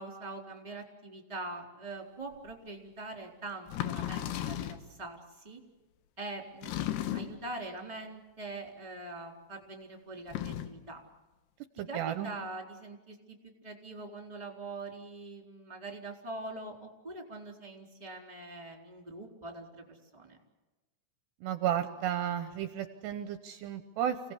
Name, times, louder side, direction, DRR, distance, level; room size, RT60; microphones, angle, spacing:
voice 1, 0.0-5.2 5.4-5.6 6.2-11.0 11.9-13.4 13.6-20.4, right 2 dB, 10° right, 2 dB, 3.6 m, -43 dB
sound 1, 2.5-2.6 3.7-4.9 6.6-7.5 10.2-10.8, left 12 dB, 70° left, 2.9 m, -35 dB
voice 2, 11.8-12.3 21.4-24.2, right 10 dB, 75° right, 8 dB, 2.9 m, -33 dB
29.5 x 18.5 x 8.5 m, 1.1 s
omnidirectional pair, 5.3 m